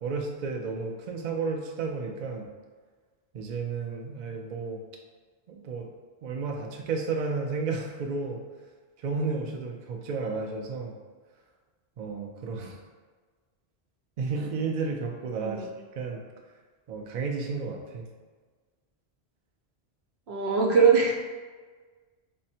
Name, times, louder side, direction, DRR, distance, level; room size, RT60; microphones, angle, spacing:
voice 1, 0.0-2.5 3.3-4.8 5.5-5.9 6.2-8.4 9.0-10.9 12.0-12.8 14.2-15.7 16.0-16.2 16.9-18.1, right 4 dB, 55° right, 1 dB, 0.5 m, -32 dB
voice 2, 20.3-21.1, right 5 dB, 80° right, -1 dB, 0.9 m, -21 dB
3.5 x 2.1 x 4.2 m, 1.4 s
omnidirectional pair, 1.1 m